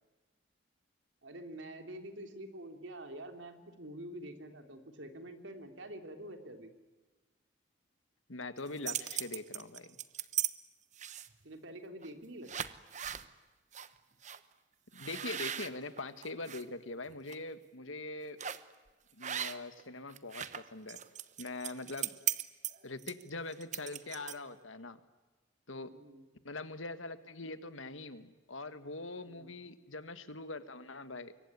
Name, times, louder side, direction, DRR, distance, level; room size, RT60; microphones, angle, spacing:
voice 1, 1.2-6.7 11.4-12.5 25.8-26.2 29.2-29.5, right 1 dB, 70° right, 6 dB, 3.3 m, -47 dB
voice 2, 8.3-10.0 14.9-18.4 19.2-21.0 21.4-22.1 22.8-25.0 25.7-25.9 26.4-31.3, left 2 dB, 85° left, 11 dB, 1.8 m, -43 dB
sound 1, 8.6-10.5 10.9-11.4 12.0-12.2 12.5-13.3 13.7-13.9 14.2-14.4 14.9-16.6 17.1-17.3 18.4-18.7 19.2-19.8 20.1-24.6, right 10 dB, 35° right, 1.0 m, -38 dB
25.5 x 23.5 x 9.7 m, 1.2 s
head